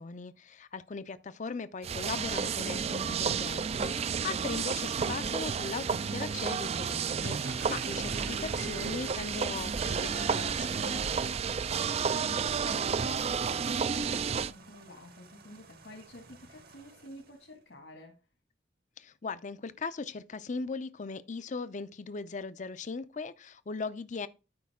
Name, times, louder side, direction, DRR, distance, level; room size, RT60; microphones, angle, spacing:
voice 1, 0.0-10.9 19.0-24.3, left 4 dB, 40° left, 0.5 m, -39 dB
sound 1, 1.8-14.5, right 6 dB, 35° right, 0.4 m, -31 dB
sound 2, 7.2-17.4, right 3 dB, 55° right, 1.3 m, -48 dB
voice 2, 7.7-8.0 11.2-18.2, left 1 dB, 80° left, 2.1 m, -51 dB
12.5 x 5.2 x 3.6 m
head